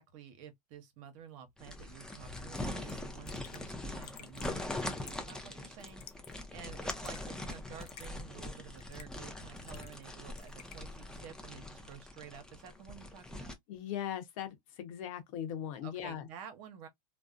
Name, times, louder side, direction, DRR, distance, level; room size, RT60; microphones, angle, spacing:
voice 1, 0.0-13.5 15.8-16.9, right 8 dB, 60° right, 0.8 m, -51 dB
sound 1, 1.6-13.6, left 1 dB, 5° left, 0.5 m, -42 dB
Raindrop / Drip, 2.5-2.6 2.9-3.0 3.3-3.6 4.0-4.6 5.1-5.3 5.8-6.3 6.6-7.2 7.8-8.1 8.8-9.2 9.6-10.1 10.4-10.8, left 9 dB, 85° left, 0.5 m, -52 dB
voice 2, 13.7-16.3, left 10 dB, 60° left, 0.8 m, -39 dB
2.5 x 2.0 x 2.4 m
hypercardioid pair, 110°, 19 cm